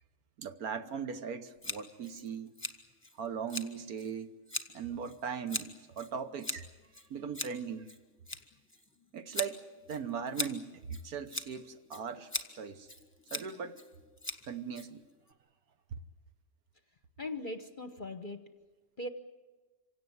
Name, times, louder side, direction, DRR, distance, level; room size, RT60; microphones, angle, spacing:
voice 1, 0.4-2.5 3.2-4.3 4.7-6.7 7.1-7.9 9.1-9.6 9.9-12.3 12.6-12.9 13.3-13.8 14.5-15.0, right 6 dB, 65° right, 1.4 m, -39 dB
Scissors, 1.6-15.3, left 1 dB, 10° left, 1.3 m, -42 dB
voice 2, 17.2-18.5 19.0-19.1, left 2 dB, 35° left, 1.0 m, -39 dB
26.5 x 17.0 x 9.4 m
omnidirectional pair, 1.8 m